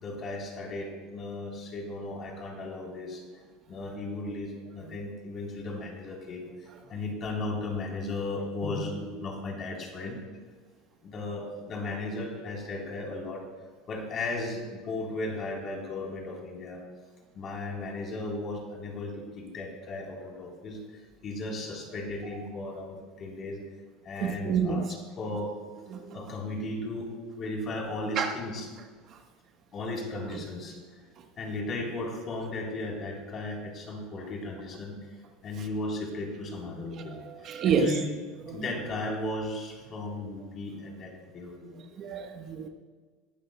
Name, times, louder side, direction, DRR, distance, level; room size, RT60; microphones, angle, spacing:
voice 1, 0.0-3.2 3.7-10.2 11.0-13.4 13.9-16.8 17.3-20.8 21.2-23.6 24.0-25.5 26.1-27.1 27.4-28.7 29.7-30.8 31.4-35.0 35.4-37.2 37.6-38.1 38.5-41.7, left 2 dB, 40° left, 3.7 m, -35 dB
voice 2, 24.2-24.9 25.9-26.2 28.2-28.3 37.2-37.9 38.4-38.6 42.0-42.7, right 6 dB, 45° right, 1.1 m, -28 dB
20.0 x 12.0 x 2.2 m
supercardioid pair, 100°, 0 cm